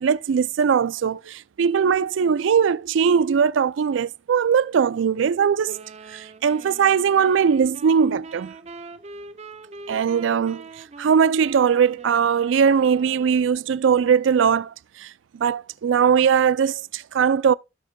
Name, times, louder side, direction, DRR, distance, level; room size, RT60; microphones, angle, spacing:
voice 1, 0.0-5.8 6.1-8.5 9.9-10.6 11.0-17.5, right 7 dB, 80° right, 0.4 m, -20 dB
sound 1, 5.7-13.7, right 3 dB, 35° right, 0.6 m, -43 dB
15.5 x 6.4 x 2.2 m
head